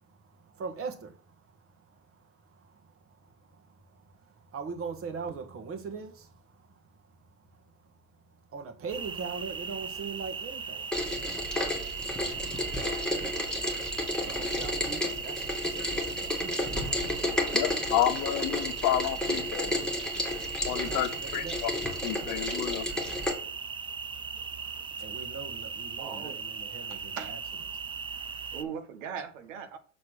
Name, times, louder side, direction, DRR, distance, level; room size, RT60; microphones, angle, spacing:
voice 1, 0.0-7.9 8.5-11.2 12.4-16.7 20.2-21.6 23.1-23.3 24.9-27.4, right 5 dB, 35° right, 1.7 m, -42 dB
sound 1, 8.9-28.6, right 5 dB, 15° right, 0.4 m, -38 dB
Rain, 10.9-23.3, left 1 dB, ahead, 1.9 m, -32 dB
voice 2, 17.5-19.9 20.7-21.7 22.0-22.9, left 12 dB, 50° left, 0.9 m, -30 dB
voice 3, 26.0-26.4 26.9-27.3 28.5-29.8, right 7 dB, 75° right, 1.5 m, -39 dB
6.6 x 4.1 x 6.3 m
supercardioid pair, 110°, 39 cm